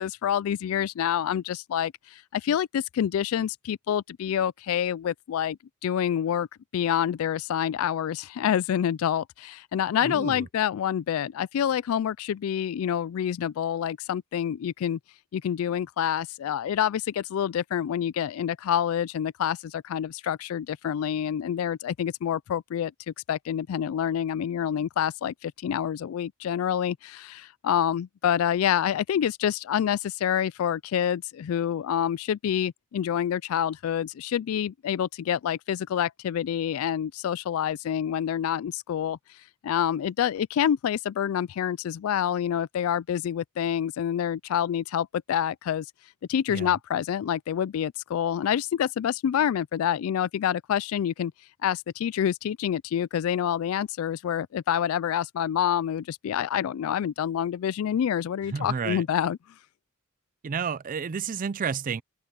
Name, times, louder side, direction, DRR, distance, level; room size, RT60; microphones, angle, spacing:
voice 1, 0.0-6.5 6.7-15.0 15.3-39.4 39.6-45.9 46.3-51.3 51.6-59.4, left 9 dB, 75° left, 0.3 m, -27 dB
voice 2, 10.0-10.4 46.5-46.7 58.4-59.0 60.4-62.0, right 6 dB, 40° right, 0.4 m, -31 dB
open air
head